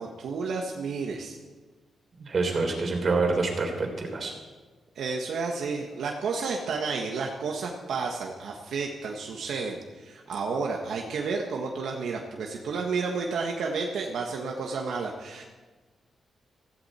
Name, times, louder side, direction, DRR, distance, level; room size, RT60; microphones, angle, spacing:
voice 1, 0.0-1.4 4.9-15.4, right 4 dB, 80° right, 0 dB, 1.5 m, -31 dB
voice 2, 2.2-4.3, right 3 dB, 40° right, 2 dB, 3.6 m, -26 dB
16.0 x 15.5 x 4.4 m, 1.3 s
wide cardioid pair, 135°, 0 cm